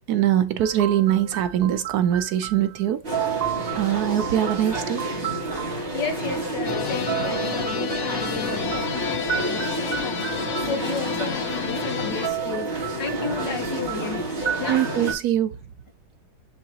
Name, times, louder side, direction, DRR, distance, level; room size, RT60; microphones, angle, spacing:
voice 1, 0.1-3.0 3.8-5.0 14.7-15.5, right 11 dB, 70° right, 1.1 m, -22 dB
sound 1, 0.6-2.8 3.1-5.8 6.8-11.1 12.0-15.2, right 11 dB, 85° right, 0.5 m, -33 dB
sound 2, 3.0-15.1, right 1 dB, 35° right, 2.6 m, -30 dB
voice 2, 5.7-14.2 14.6-14.8, left 4 dB, 80° left, 2.3 m, -33 dB
sound 3, 6.6-12.3, left 8 dB, 60° left, 0.9 m, -30 dB
10.0 x 3.8 x 2.9 m
omnidirectional pair, 1.9 m